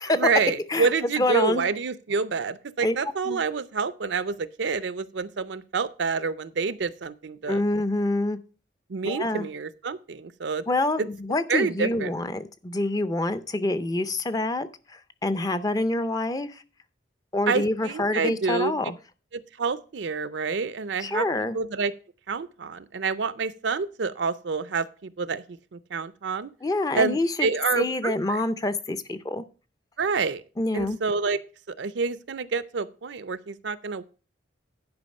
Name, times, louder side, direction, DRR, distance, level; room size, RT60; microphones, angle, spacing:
voice 1, 0.1-7.6 8.9-10.6 11.0-11.1 11.5-12.1 17.5-18.7 19.3-21.3 21.5-21.9 22.3-26.5 26.9-28.4 30.0-30.4 30.7-31.4 31.7-34.0, right 4 dB, 70° right, 15 dB, 0.5 m, -28 dB
voice 2, 1.2-1.7 2.8-3.0 3.2-3.4 7.5-8.4 9.0-9.5 10.7-16.6 17.3-18.9 21.0-21.6 26.6-27.5 27.8-29.4 30.6-31.0, left 2 dB, 20° left, 12 dB, 0.5 m, -26 dB
10.5 x 5.2 x 5.3 m, 0.37 s
head